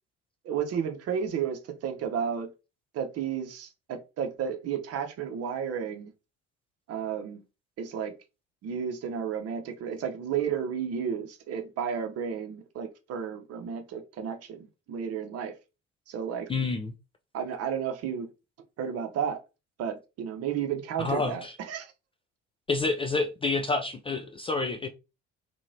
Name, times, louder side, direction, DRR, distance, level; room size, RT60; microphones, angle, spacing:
voice 1, 0.4-2.5 2.9-6.1 6.9-7.4 7.8-8.1 8.6-15.5 16.1-16.5 17.3-18.3 18.8-19.4 19.8-21.9, right 7 dB, 45° right, 0.8 m, -32 dB
voice 2, 16.5-16.9 21.0-21.5 22.7-24.9, left 3 dB, 15° left, 0.4 m, -28 dB
3.0 x 2.9 x 2.7 m
figure-of-eight pair, 55°, 35 cm